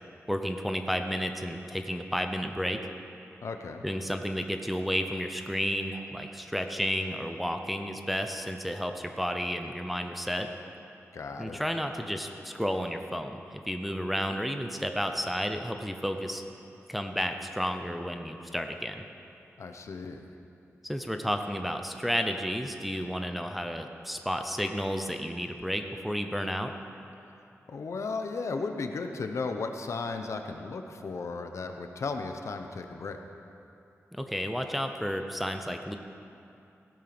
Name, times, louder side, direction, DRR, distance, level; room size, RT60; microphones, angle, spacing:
voice 1, 0.3-2.8 3.8-10.5 11.4-13.4 13.7-16.4 16.9-19.0 20.8-26.7 34.1-36.0, equal, ahead, 5 dB, 0.6 m, -32 dB
voice 2, 3.4-3.8 11.1-11.6 19.6-20.2 27.7-33.2, left 4 dB, 65° left, 6 dB, 0.9 m, -35 dB
16.0 x 9.0 x 6.0 m, 2.7 s
wide cardioid pair, 165°, 5 cm